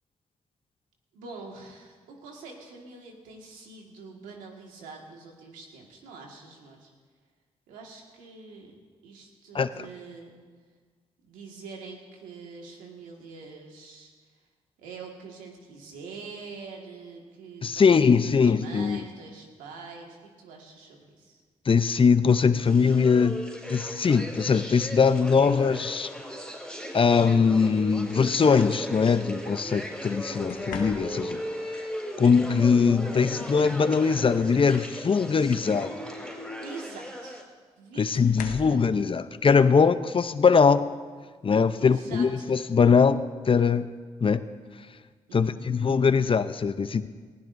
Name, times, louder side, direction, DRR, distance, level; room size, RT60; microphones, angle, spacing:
voice 1, 1.1-6.9 7.7-8.8 9.0-10.4 11.2-14.1 14.8-21.4 36.6-37.4 37.8-38.8 41.8-42.5 45.3-45.6, right 4 dB, 90° right, 0 dB, 1.8 m, -44 dB
voice 2, 17.6-19.0 21.7-23.4 23.7-26.1 26.9-31.4 31.7-31.8 32.2-35.9 38.0-40.9 41.4-43.9 44.2-44.4 45.3-47.1, left 5 dB, 40° left, 13 dB, 0.7 m, -21 dB
sound 1, 22.6-37.4, equal, 5° left, 4.9 m, -37 dB
sound 2, 25.5-25.9 27.2-27.4 30.5-31.5 33.2-33.3 33.8-34.9 35.3-35.6 37.0-37.1 38.1-38.9 40.6-40.8 41.2-41.6, left 7 dB, 80° left, 0.8 m, -43 dB
19.0 x 16.0 x 2.7 m, 1.5 s
supercardioid pair, 45°, 13 cm